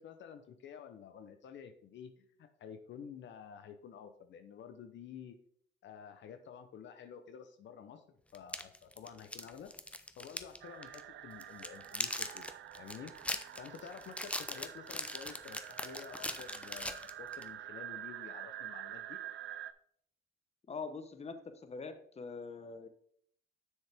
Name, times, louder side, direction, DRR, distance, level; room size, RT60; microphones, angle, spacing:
voice 1, 0.0-5.4 5.8-9.7 10.2-12.5 12.8-13.1 13.6-19.2, left 7 dB, 65° left, 8 dB, 0.7 m, -50 dB
sound 1, 8.3-10.6 10.8-11.0 11.4-17.5, left 1 dB, 5° left, 0.6 m, -40 dB
sound 2, 10.6-19.7, right 11 dB, 70° right, 0.5 m, -47 dB
voice 2, 20.7-22.9, left 4 dB, 30° left, 9 dB, 1.0 m, -44 dB
7.4 x 6.4 x 3.5 m, 0.63 s
cardioid pair, 90°, 20 cm